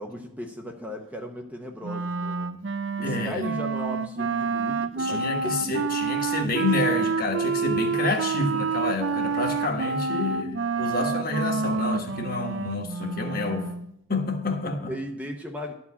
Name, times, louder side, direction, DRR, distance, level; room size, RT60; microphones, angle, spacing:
voice 1, 0.0-2.7 3.0-5.9 14.6-15.7, equal, 5° right, 0.8 m, -36 dB
Wind instrument woodwind instrument, 1.8-13.9, right 4 dB, 65° right, 0.5 m, -28 dB
voice 2, 3.0-3.4 5.0-13.7 14.1-14.9, left 3 dB, 45° left, 1.3 m, -28 dB
12.0 x 4.7 x 8.4 m
head